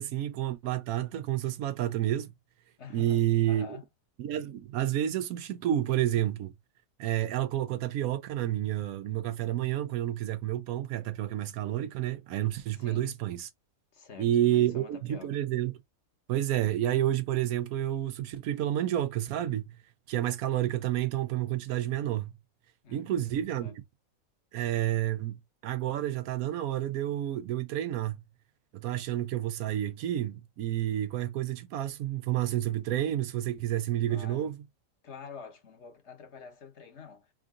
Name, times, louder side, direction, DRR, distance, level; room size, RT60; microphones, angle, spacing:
voice 1, 0.0-2.3 2.9-3.8 4.2-6.5 7.0-13.5 14.2-15.7 16.3-19.7 20.1-22.3 22.9-23.8 24.5-28.2 28.7-34.6, right 12 dB, 85° right, 1.1 m, -30 dB
voice 2, 2.8-3.8 12.7-13.1 13.9-15.4 22.8-23.3 23.6-23.8 34.1-34.5 35.0-37.3, left 6 dB, 55° left, 1.2 m, -47 dB
3.7 x 2.5 x 3.6 m
omnidirectional pair, 1.5 m